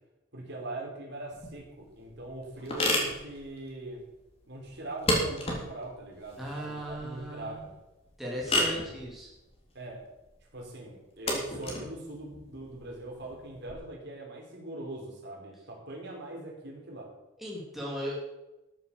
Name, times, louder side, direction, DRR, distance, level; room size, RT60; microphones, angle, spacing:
voice 1, 0.3-4.0 4.5-7.7 8.5-9.0 9.7-10.0 10.5-17.1, right 2 dB, 60° right, -2 dB, 4.6 m, -42 dB
sound 1, 1.3-13.7, left 1 dB, 30° left, 3.4 m, -34 dB
voice 2, 6.4-7.6 8.2-9.3 17.4-18.2, equal, ahead, -4 dB, 3.2 m, -37 dB
14.0 x 8.1 x 7.1 m, 0.98 s
head